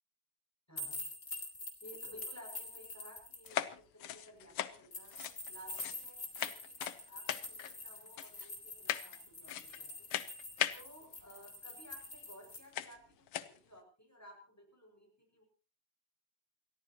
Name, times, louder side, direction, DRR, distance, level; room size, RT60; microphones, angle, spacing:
voice 1, 0.7-1.1 1.8-5.2 5.5-10.1 10.7-15.4, equal, 5° left, 2 dB, 6.1 m, -57 dB
sound 1, 0.8-3.5 4.9-12.6, left 2 dB, 40° left, 3.5 m, -46 dB
sound 2, 3.4-6.1 6.3-7.0 7.3-7.7 8.2-8.5 8.9-9.2 9.5-9.8 10.1-10.8 12.0-12.1 12.7-13.0 13.3-13.6, left 11 dB, 85° left, 1.8 m, -38 dB
28.5 x 13.5 x 2.9 m, 0.36 s
omnidirectional pair, 2.4 m